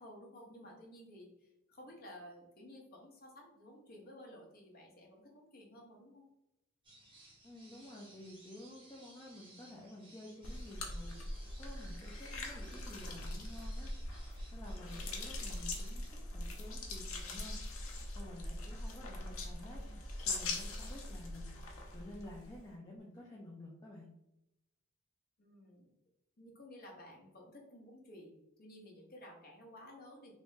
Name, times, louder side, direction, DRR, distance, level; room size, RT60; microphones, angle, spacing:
voice 1, 0.0-6.3 19.3-19.9 25.4-25.9 26.4-30.4, left 1 dB, 45° left, 0 dB, 0.8 m, -54 dB
sound 1, 6.8-16.1, right 1 dB, 25° right, 1.0 m, -60 dB
voice 2, 7.4-13.9 14.5-17.7 18.1-24.1, left 1 dB, 20° left, -3 dB, 0.5 m, -51 dB
sound 2, 10.4-22.6, left 2 dB, 75° left, 0.7 m, -42 dB
3.2 x 2.6 x 3.1 m, 0.88 s
head